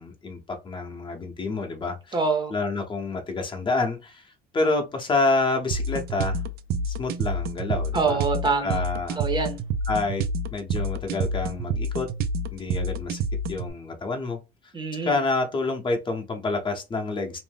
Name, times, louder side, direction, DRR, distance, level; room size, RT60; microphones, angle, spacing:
voice 1, 0.0-2.2 2.5-6.4 6.9-8.2 8.6-9.2 9.9-10.2 10.5-12.1 12.5-13.2 13.5-14.4 14.9-17.4, left 3 dB, 30° left, 0.7 m, -28 dB
voice 2, 2.1-2.5 7.9-8.8 9.2-9.6 14.7-15.2, right 4 dB, 25° right, 0.6 m, -25 dB
sound 1, 5.7-13.7, right 2 dB, 65° right, 0.4 m, -28 dB
2.6 x 2.1 x 3.4 m
cardioid pair, 110°, 17 cm